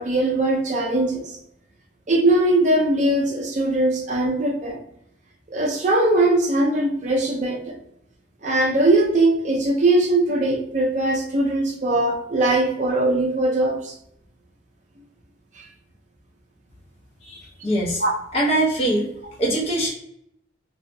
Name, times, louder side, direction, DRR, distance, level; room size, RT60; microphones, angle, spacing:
voice 1, 0.0-1.4 2.1-4.8 5.5-7.8 8.4-13.9 15.6-15.7 18.0-18.1, right 2 dB, 40° right, 0 dB, 0.5 m, -20 dB
voice 2, 17.2-18.0 18.3-19.1 19.4-19.9, right 1 dB, 30° left, -4 dB, 0.6 m, -22 dB
3.3 x 2.0 x 2.6 m, 0.74 s
head